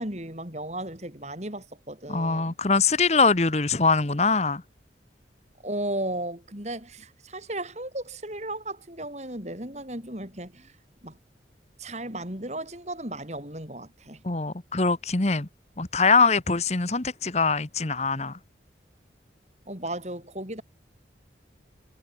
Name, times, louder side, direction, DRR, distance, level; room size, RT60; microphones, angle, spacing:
voice 1, 0.0-2.6 5.6-10.7 11.0-11.2 11.8-14.2 19.7-20.6, right 1 dB, 40° right, 7.0 m, -35 dB
voice 2, 2.1-4.6 14.2-15.5 15.8-18.4, left 4 dB, 35° left, 1.2 m, -23 dB
head